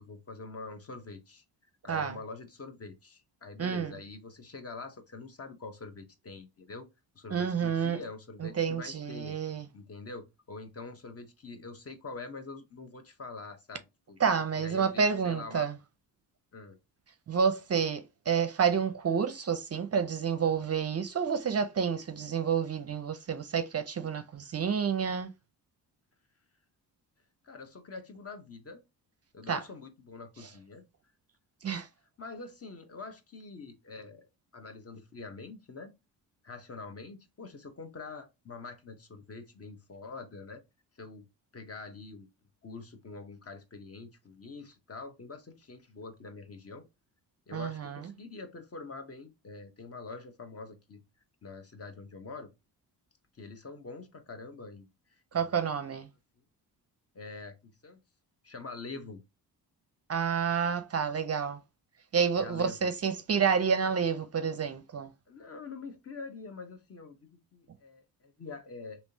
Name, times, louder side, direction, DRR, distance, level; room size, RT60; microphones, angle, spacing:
voice 1, 0.0-1.4 1.8-6.9 7.1-9.4 9.7-13.8 14.1-14.2 14.6-15.7 16.5-16.8 27.4-28.8 29.3-30.8 32.2-35.9 36.4-40.6 41.0-41.2 41.5-42.3 42.6-46.8 47.5-51.0 51.4-52.5 53.4-54.9 55.3-55.6 57.1-58.0 58.4-59.2 62.3-62.9 65.3-69.0, left 3 dB, 35° left, 1.0 m, -45 dB
voice 2, 3.6-3.9 7.3-8.0 8.4-9.7 14.2-15.7 17.3-25.3 29.5-29.6 31.6-31.9 47.5-48.1 55.3-56.1 60.1-61.6 62.1-65.1, right 6 dB, 35° right, 0.5 m, -29 dB
3.4 x 2.8 x 2.7 m
cardioid pair, 75°, 41 cm